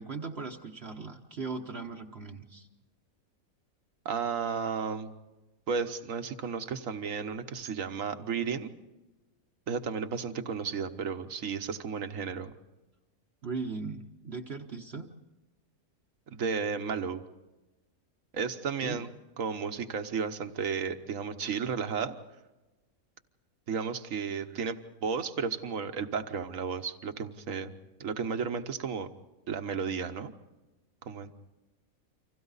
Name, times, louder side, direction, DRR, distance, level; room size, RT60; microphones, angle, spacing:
voice 1, 0.0-2.7 13.4-15.1 18.8-19.0, right 4 dB, 45° right, 3 dB, 1.2 m, -38 dB
voice 2, 4.0-5.1 5.7-8.7 9.7-12.5 16.3-17.2 18.3-19.1 19.4-22.1 23.7-27.7 28.0-29.1 29.5-30.3 31.0-31.3, right 6 dB, 65° right, 8 dB, 1.5 m, -33 dB
30.0 x 25.5 x 4.1 m, 1.1 s
omnidirectional pair, 1.6 m